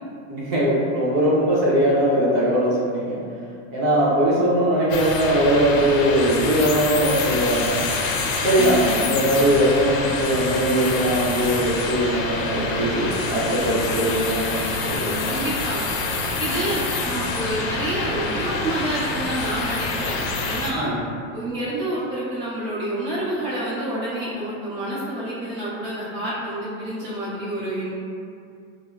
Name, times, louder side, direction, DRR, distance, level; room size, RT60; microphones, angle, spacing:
voice 1, 0.3-3.2 3.7-7.9 8.4-15.3 16.3-16.6 20.7-21.0, right 1 dB, 60° right, -7 dB, 0.8 m, -21 dB
sound 1, 4.9-20.7, left 3 dB, 80° left, 0.5 m, -26 dB
voice 2, 8.6-9.1 15.2-15.8 16.4-20.9 21.3-27.9, right 1 dB, 25° right, -11 dB, 0.7 m, -28 dB
3.1 x 2.0 x 2.3 m, 2.4 s
supercardioid pair, 170°, 40 cm